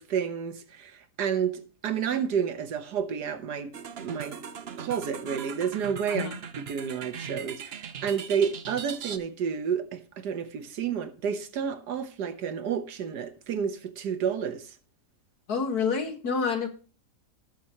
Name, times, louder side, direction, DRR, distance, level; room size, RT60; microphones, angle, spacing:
voice 1, 0.0-3.7 4.0-4.4 4.8-14.7, right 7 dB, 80° right, 1.7 m, -30 dB
sound 1, 3.7-9.2, right 7 dB, 50° right, 0.9 m, -40 dB
voice 2, 6.1-6.4 15.5-16.7, left 5 dB, 70° left, 2.2 m, -28 dB
19.0 x 6.5 x 3.0 m
omnidirectional pair, 1.7 m